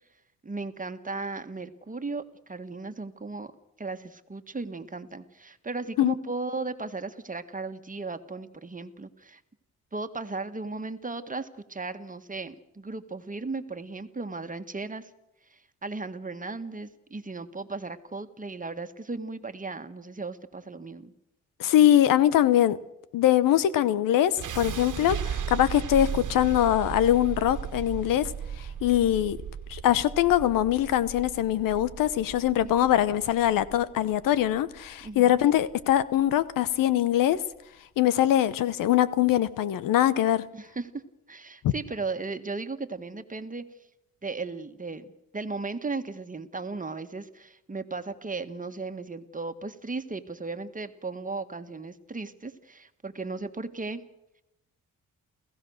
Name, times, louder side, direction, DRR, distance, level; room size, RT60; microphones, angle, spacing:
voice 1, 0.4-2.2 2.5-3.5 3.8-9.4 9.9-15.1 15.5-21.1 32.6-32.7 35.0-35.4 40.5-41.0 41.3-43.6 44.2-54.0, right 3 dB, 25° right, 1.7 m, -36 dB
voice 2, 21.6-22.8 23.1-28.3 28.6-29.4 29.7-37.4 38.0-40.4 41.6-41.7, left 12 dB, 80° left, 0.9 m, -23 dB
sound 1, 24.4-36.4, right 8 dB, 70° right, 1.6 m, -37 dB
29.0 x 15.5 x 6.5 m
supercardioid pair, 65°, 33 cm